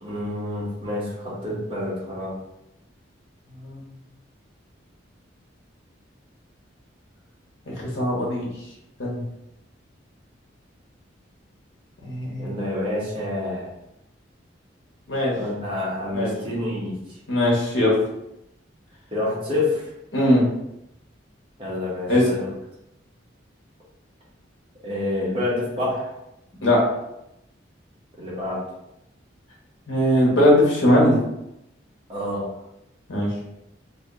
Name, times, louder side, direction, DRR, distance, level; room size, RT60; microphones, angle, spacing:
voice 1, 0.0-2.3 12.4-13.7 15.3-17.0 19.1-19.9 21.6-22.5 24.8-26.1 28.2-28.6 32.1-32.5, left 1 dB, 30° right, -7 dB, 1.5 m, -28 dB
voice 2, 7.7-8.5 9.0-9.2 12.0-12.5 15.1-15.3 16.1-16.3 17.3-18.0 20.1-20.4 22.1-22.3 26.6-26.8 29.9-31.2 33.1-33.3, left 1 dB, 80° left, -4 dB, 1.4 m, -20 dB
4.1 x 3.2 x 3.2 m, 0.84 s
head